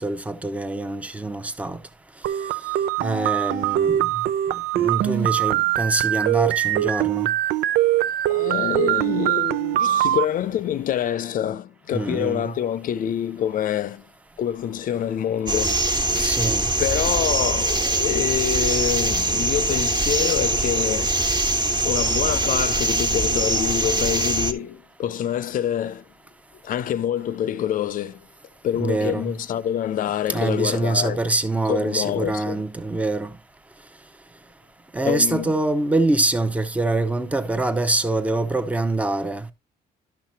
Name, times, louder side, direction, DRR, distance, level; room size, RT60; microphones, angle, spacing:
voice 1, 0.0-1.8 3.0-4.1 4.7-7.3 11.9-12.5 16.2-16.7 28.7-29.3 30.3-33.3 34.9-39.4, right 2 dB, 10° right, 0.8 m, -24 dB
sound 1, 2.2-10.3, right 13 dB, 75° right, 0.5 m, -22 dB
voice 2, 8.3-14.1 14.4-16.4 16.8-21.2 21.8-26.0 26.6-28.3 28.6-31.2 31.7-32.6 35.0-35.5, left 10 dB, 55° left, 0.6 m, -26 dB
sound 2, 15.5-24.5, right 2 dB, 25° right, 1.4 m, -22 dB
12.0 x 5.8 x 2.9 m
cardioid pair, 110°, 17 cm